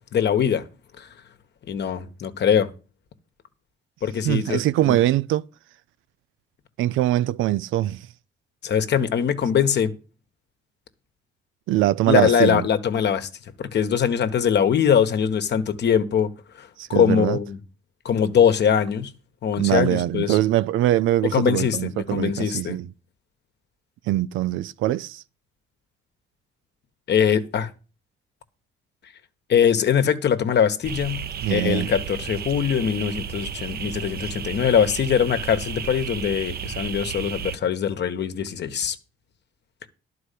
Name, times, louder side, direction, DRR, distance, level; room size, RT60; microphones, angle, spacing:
voice 1, 0.1-0.6 1.0-1.1 1.7-2.7 4.0-5.0 8.6-9.9 12.1-13.3 13.6-16.3 16.9-17.6 18.0-19.1 19.4-20.4 21.3-22.7 27.1-27.7 29.5-31.2 31.5-38.9, left 8 dB, 60° left, 1.3 m, -22 dB
voice 2, 4.2-5.4 6.8-8.1 11.7-12.7 16.8-17.4 19.6-22.9 24.1-25.2 31.4-31.9, right 14 dB, 85° right, 0.5 m, -22 dB
sound 1, 30.8-37.6, right 8 dB, 50° right, 0.7 m, -33 dB
11.5 x 4.7 x 8.3 m
cardioid pair, 90°, 20 cm